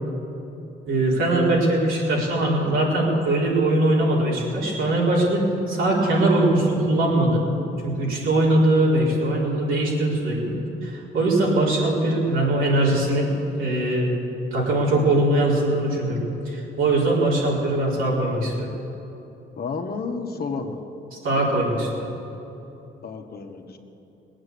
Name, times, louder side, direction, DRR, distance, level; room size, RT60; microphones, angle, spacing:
voice 1, 0.9-7.4 7.8-10.5 10.8-13.3 13.6-14.1 14.5-18.7 21.2-22.1, right 1 dB, 85° right, -5 dB, 4.4 m, -21 dB
voice 2, 19.6-20.8 23.0-23.8, left 4 dB, 50° left, 4 dB, 1.5 m, -31 dB
19.5 x 8.8 x 8.5 m, 2.9 s
cardioid pair, 90°, 20 cm